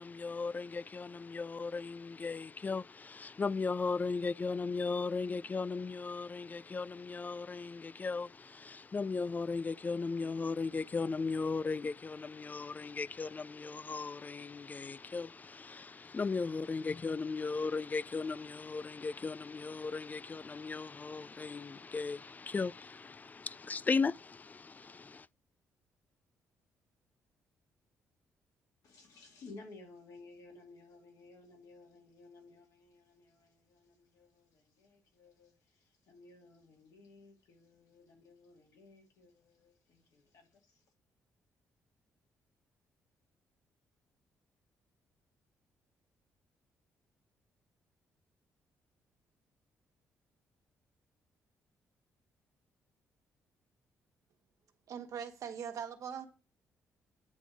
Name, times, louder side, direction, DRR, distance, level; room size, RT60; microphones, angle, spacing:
voice 1, 0.0-25.3, left 4 dB, 30° left, 0.3 m, -37 dB
voice 2, 28.8-40.8, left 3 dB, 70° left, 2.6 m, -57 dB
voice 3, 54.9-56.3, right 7 dB, 65° right, 1.4 m, -41 dB
9.3 x 3.5 x 6.2 m
supercardioid pair, 55°, 6 cm